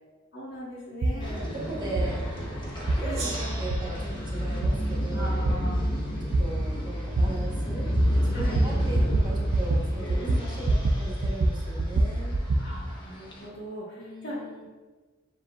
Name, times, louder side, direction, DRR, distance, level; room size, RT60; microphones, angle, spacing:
voice 1, 0.3-1.5 3.0-3.4 5.1-6.0 6.7-7.4 8.3-8.7 10.2-10.5 12.5-14.5, equal, 60° left, -6 dB, 1.3 m, -40 dB
sound 1, 1.0-1.2 2.0-2.1 2.9-3.0 3.7-3.8 4.6-4.7 5.4-5.6 6.3-6.4 7.2-7.3 8.0-8.1 8.4-8.7 9.0-9.2 9.5-9.8 10.1-11.0 11.2-12.6, right 2 dB, 60° right, 0.4 m, -23 dB
voice 2, 1.1-2.2 2.8-5.6 6.2-12.3 14.0-14.7, right 2 dB, 20° right, -4 dB, 0.9 m, -38 dB
sound 2, 1.2-13.5, equal, 25° left, 0.7 m, -31 dB
Gong, 3.1-6.3, right 3 dB, 90° right, 0.9 m, -42 dB
7.3 x 2.7 x 2.3 m, 1.3 s
head